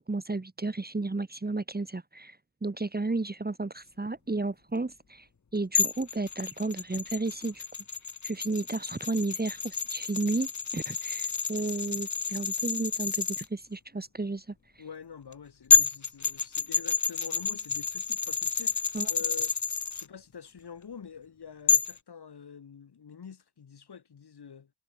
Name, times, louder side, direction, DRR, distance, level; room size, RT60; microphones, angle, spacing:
voice 1, 0.1-5.3 5.5-7.6 8.2-14.5 18.9-19.1, right 3 dB, 25° right, 1.4 m, -33 dB
sound 1, 5.7-13.4 15.3-15.4 15.7-20.0 21.7-22.0, left 5 dB, 45° left, 1.3 m, -29 dB
voice 2, 14.8-19.5 19.9-24.7, left 7 dB, 75° left, 2.8 m, -45 dB
cardioid pair, 50°, 39 cm